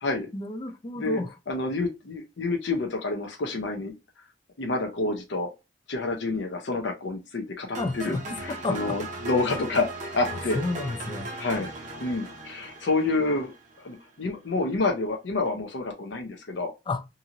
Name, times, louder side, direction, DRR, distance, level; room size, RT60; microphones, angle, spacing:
voice 1, 0.3-1.3 7.8-9.0 10.5-11.3 16.9-17.1, left 3 dB, 25° left, 0.3 m, -31 dB
voice 2, 1.5-3.9 4.6-5.5 5.9-9.9 10.1-10.6 11.4-11.7 12.0-13.5 13.8-16.7, left 3 dB, 70° left, 0.6 m, -28 dB
sound 1, 7.8-13.9, right 2 dB, 40° right, 0.7 m, -37 dB
2.7 x 2.5 x 2.8 m
head